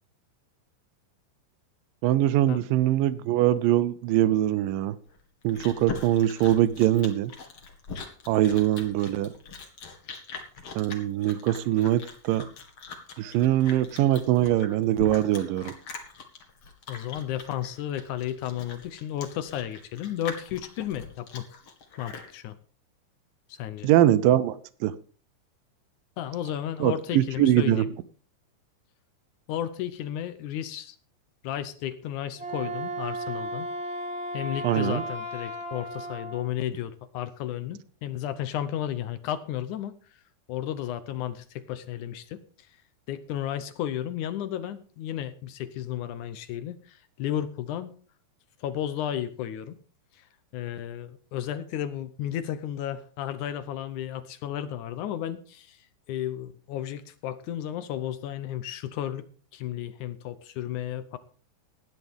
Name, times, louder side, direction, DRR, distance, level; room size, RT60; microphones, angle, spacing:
voice 1, 2.0-5.0 5.4-7.3 8.3-9.3 10.8-12.5 13.2-15.7 23.8-24.9 26.8-27.9 34.6-35.0, right 13 dB, 90° right, 16 dB, 2.4 m, -23 dB
Chewing mastication, 5.1-22.3, left 5 dB, 50° left, 2.8 m, -42 dB
voice 2, 16.9-21.6 22.0-22.6 23.5-23.9 26.2-27.9 29.5-31.0 31.4-33.7 34.3-39.9 40.5-42.4 43.1-47.9 48.6-49.8 50.1-50.3 50.5-59.3 59.5-61.2, left 11 dB, 75° left, 12 dB, 2.1 m, -33 dB
Wind instrument woodwind instrument, 32.3-36.5, right 1 dB, ahead, 1.9 m, -35 dB
17.0 x 10.5 x 3.6 m, 0.43 s
omnidirectional pair, 3.9 m